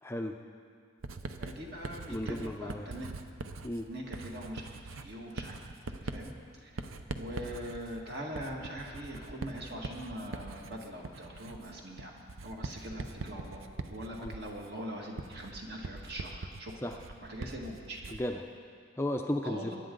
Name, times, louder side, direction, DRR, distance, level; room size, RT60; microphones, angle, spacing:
voice 1, 0.0-0.4 2.1-2.9 3.6-3.9 14.2-14.3 16.8-17.0 18.1-18.5 19.0-19.7, left 1 dB, 10° left, 3 dB, 0.4 m, -34 dB
Writing, 1.0-18.4, right 3 dB, 85° right, 0.7 m, -43 dB
voice 2, 1.4-3.1 3.9-5.6 6.0-6.3 6.6-6.7 7.2-12.1 12.4-13.6 13.9-16.7 17.3-18.0 19.4-19.8, equal, 50° right, -1 dB, 1.8 m, -42 dB
22.5 x 10.5 x 3.9 m, 2.2 s
head